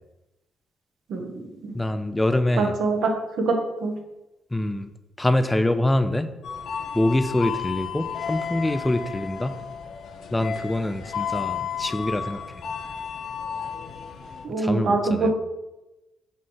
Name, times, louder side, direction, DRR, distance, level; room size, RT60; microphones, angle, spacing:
voice 1, 1.7-2.7 4.5-4.9 5.2-6.3 6.9-9.6 10.3-12.4 14.6-15.3, left 1 dB, 10° left, 10 dB, 0.5 m, -24 dB
voice 2, 2.6-3.1 3.4-4.0 14.4-15.3, right 3 dB, 70° right, 3 dB, 1.3 m, -24 dB
sound 1, 6.4-14.5, left 7 dB, 65° left, 0.8 m, -33 dB
7.7 x 3.2 x 5.6 m, 0.99 s
cardioid pair, 90°, 0 cm